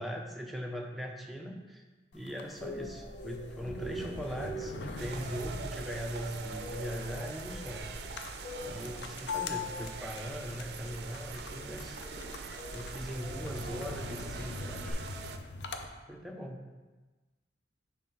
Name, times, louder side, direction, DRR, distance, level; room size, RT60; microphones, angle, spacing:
voice 1, 0.0-1.8 2.1-7.9 8.6-12.0 12.7-15.0 16.1-16.6, equal, ahead, 1 dB, 0.4 m, -40 dB
sound 1, 2.1-15.9, left 4 dB, 75° left, 0.5 m, -43 dB
sound 2, 2.6-14.9, equal, 35° left, 0.8 m, -46 dB
sound 3, 5.0-15.4, right 5 dB, 65° right, 0.4 m, -43 dB
5.6 x 3.1 x 5.6 m, 1.2 s
head